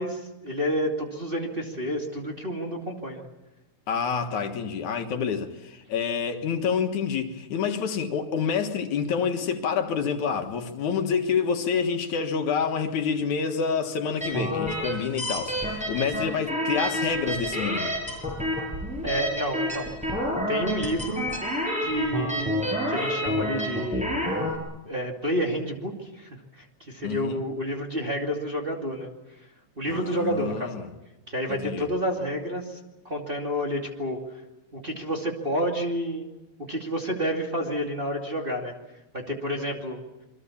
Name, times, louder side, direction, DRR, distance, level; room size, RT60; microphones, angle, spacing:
voice 1, 0.0-3.3 19.0-20.1 20.5-21.3 21.8-24.1 24.9-29.1 29.8-30.9 31.3-32.8 33.0-34.2 34.7-36.3 36.7-38.7 39.1-40.0, equal, 20° right, 2.3 m, -29 dB
voice 2, 3.9-17.9 27.0-27.4 29.9-30.9 31.5-31.9, left 6 dB, 75° left, 3.0 m, -28 dB
sound 1, 14.2-24.6, equal, ahead, 6.4 m, -29 dB
27.5 x 23.0 x 7.1 m
omnidirectional pair, 3.4 m